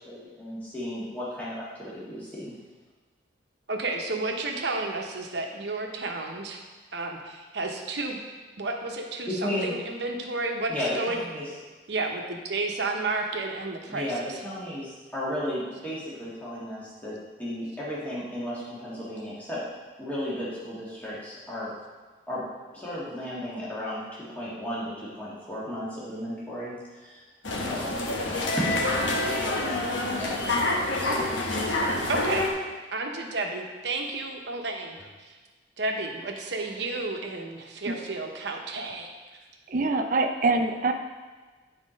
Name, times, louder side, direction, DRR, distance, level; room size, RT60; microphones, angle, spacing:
voice 1, 0.0-2.6 9.3-9.8 10.7-11.5 13.9-19.6 20.0-21.7 22.3-22.4 22.7-27.2 27.7-28.7 30.1-30.4 31.0-31.6, left 1 dB, 10° left, -8 dB, 1.7 m, -34 dB
voice 2, 3.7-6.6 6.9-8.2 8.6-11.2 11.9-14.4 32.1-32.4 32.9-35.3 35.8-39.1, right 3 dB, 65° right, 2 dB, 0.9 m, -31 dB
sound 1, 27.4-32.5, left 2 dB, 85° left, 1.0 m, -27 dB
voice 3, 39.7-40.9, right 3 dB, 45° right, 6 dB, 0.5 m, -24 dB
7.7 x 4.4 x 5.1 m, 1.3 s
head